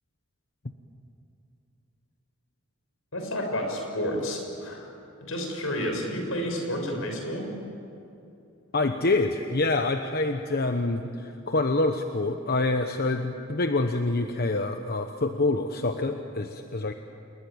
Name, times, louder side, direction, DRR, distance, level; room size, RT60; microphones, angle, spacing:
voice 1, 3.1-4.9 5.2-7.5, equal, 80° left, 3 dB, 6.7 m, -30 dB
voice 2, 8.7-16.9, left 2 dB, 50° left, 6 dB, 1.1 m, -26 dB
28.5 x 21.5 x 8.7 m, 2.6 s
head